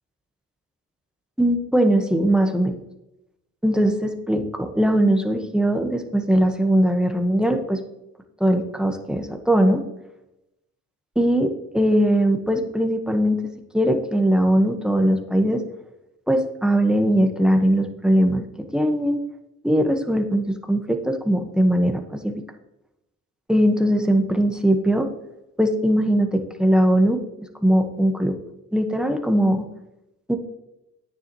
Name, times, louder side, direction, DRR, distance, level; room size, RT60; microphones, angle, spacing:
voice 1, 1.4-2.7 3.6-7.8 8.4-9.8 11.1-13.4 13.7-15.6 16.3-18.4 18.7-19.2 19.6-22.4 23.5-25.1 25.6-27.2 27.6-28.3 28.7-29.7 30.3-30.4, right 1 dB, 5° right, 4 dB, 1.3 m, -20 dB
10.0 x 9.2 x 3.1 m, 0.88 s
cardioid pair, 90°, 30 cm